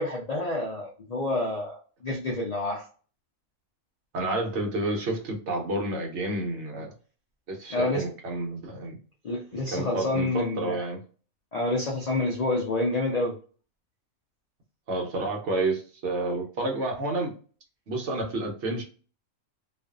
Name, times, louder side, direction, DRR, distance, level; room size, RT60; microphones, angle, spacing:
voice 1, 0.0-2.9 7.7-8.1 9.2-10.8 11.5-13.3, left 2 dB, 75° left, -1 dB, 0.3 m, -28 dB
voice 2, 4.1-6.9 7.5-9.0 9.5-11.0 14.9-17.3 17.9-18.8, right 2 dB, 60° right, 1 dB, 1.0 m, -30 dB
2.5 x 2.4 x 2.3 m, 0.40 s
omnidirectional pair, 1.5 m